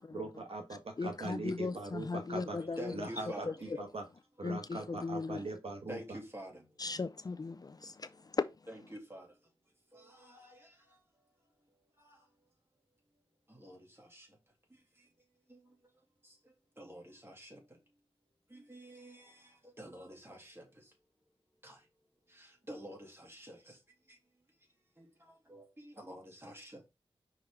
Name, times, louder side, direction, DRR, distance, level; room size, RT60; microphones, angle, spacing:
voice 1, 0.1-2.6 2.9-4.0 4.4-6.2, right 2 dB, 65° right, 1.4 m, -41 dB
voice 2, 1.0-3.1 3.4-3.8 4.4-5.4 6.8-8.5, left 4 dB, 40° left, 0.4 m, -37 dB
voice 3, 2.6-3.7 4.4-4.5 5.9-6.7 8.7-9.4 9.9-11.0 12.0-12.3 13.5-14.4 14.7-15.1 15.5-15.8 16.2-17.8 18.5-20.9 21.6-21.9 22.3-23.8 24.1-24.2 25.0-26.9, equal, 20° right, 2.4 m, -49 dB
5.4 x 4.9 x 3.5 m
wide cardioid pair, 80°, 11 cm